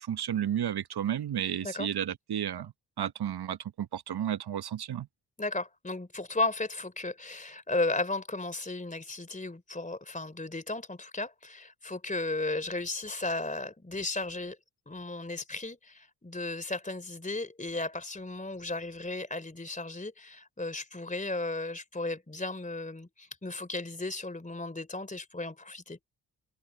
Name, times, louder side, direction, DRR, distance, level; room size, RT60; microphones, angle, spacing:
voice 1, 0.0-5.1, right 10 dB, 50° right, 1.1 m, -32 dB
voice 2, 5.4-14.6 14.9-26.0, left 2 dB, 15° left, 3.3 m, -35 dB
hypercardioid pair, 40°, 48 cm